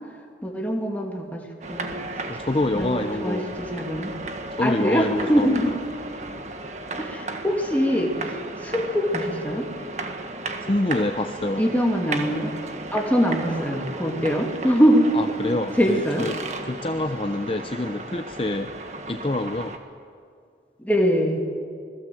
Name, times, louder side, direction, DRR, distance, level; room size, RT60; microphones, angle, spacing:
voice 1, 0.4-2.1 2.7-4.1 4.6-5.7 7.0-9.7 11.6-12.6 12.9-15.1 15.8-16.3 20.8-21.4, equal, 10° left, 0 dB, 2.7 m, -23 dB
sound 1, 1.6-19.8, right 2 dB, 40° right, 1.7 m, -35 dB
voice 2, 2.3-3.5 4.5-5.8 10.7-11.6 15.1-18.8 19.1-19.8, left 1 dB, 30° left, 7 dB, 0.7 m, -27 dB
26.0 x 20.5 x 7.8 m, 2.2 s
head